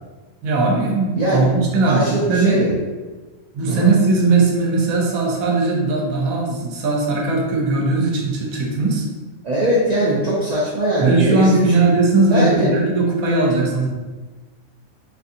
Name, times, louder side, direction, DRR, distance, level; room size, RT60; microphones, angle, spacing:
voice 1, 0.4-2.6 3.5-9.1 11.0-13.9, right 3 dB, 85° right, -1 dB, 1.2 m, -18 dB
voice 2, 1.8-2.7 3.7-3.9 9.4-11.7 12.3-12.7, right 1 dB, 55° right, -7 dB, 0.4 m, -20 dB
4.3 x 2.7 x 2.5 m, 1.3 s
omnidirectional pair, 1.4 m